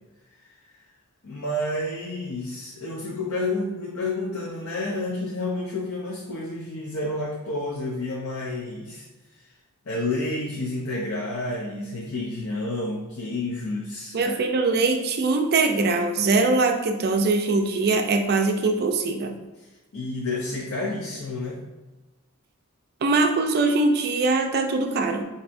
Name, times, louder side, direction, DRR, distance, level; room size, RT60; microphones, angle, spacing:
voice 1, 1.2-9.1 9.9-14.4 19.6-21.6, left 2 dB, 70° left, -4 dB, 0.6 m, -30 dB
voice 2, 14.1-19.3 23.0-25.2, right 3 dB, 45° right, 5 dB, 0.4 m, -22 dB
4.4 x 2.6 x 2.6 m, 1.1 s
head